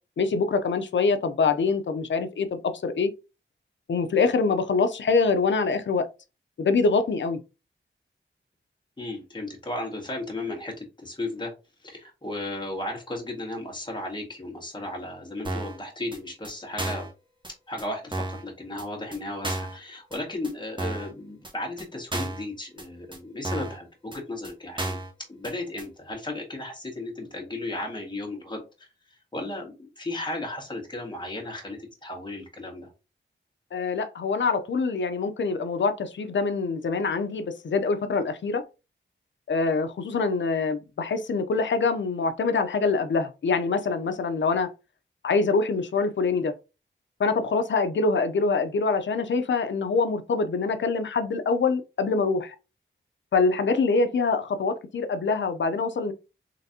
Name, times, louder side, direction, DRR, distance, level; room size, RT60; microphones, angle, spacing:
voice 1, 0.2-3.1 3.9-6.1 6.6-7.4 33.7-38.6 39.5-44.7 45.2-46.5 47.2-52.5 53.3-56.1, left 4 dB, 65° left, 0.6 m, -25 dB
voice 2, 9.0-11.5 11.8-17.1 17.7-25.0 25.3-28.9 29.3-32.9, left 2 dB, 20° left, 1.6 m, -35 dB
sound 1, 15.4-15.8 16.1-16.2 16.4-16.5 16.8-17.1 17.4-17.5 17.8-17.9 18.1-18.4 18.8-18.9 19.1-19.2 19.4-19.8 20.1-20.2 20.4-20.5 20.8-21.1 21.4-21.5 21.8-21.9 22.1-22.4 22.8-22.9 23.1-23.2 23.4-23.8 24.1-24.2 24.4-24.5 24.8-25.1 25.4-25.5 25.8-25.9, right 2 dB, 25° right, 1.1 m, -32 dB
4.0 x 3.2 x 2.7 m
wide cardioid pair, 95°, 20 cm